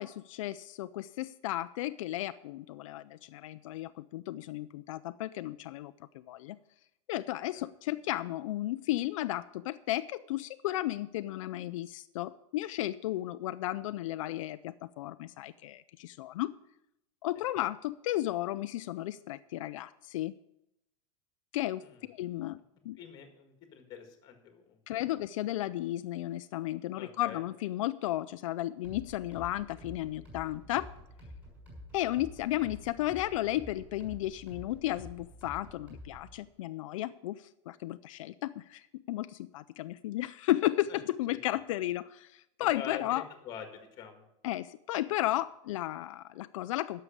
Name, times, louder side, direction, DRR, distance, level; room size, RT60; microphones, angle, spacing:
voice 1, 0.0-6.6 7.1-16.5 17.2-20.3 21.5-22.6 22.8-23.0 24.9-30.9 31.9-43.3 44.4-47.0, left 15 dB, 80° left, 12 dB, 0.4 m, -34 dB
voice 2, 23.0-25.0 26.9-27.4 42.7-44.2, left 7 dB, 25° left, 6 dB, 1.7 m, -45 dB
sound 1, 28.8-36.4, left 1 dB, 10° right, 5.6 m, -49 dB
11.0 x 6.7 x 8.5 m, 0.83 s
supercardioid pair, 175°, 17 cm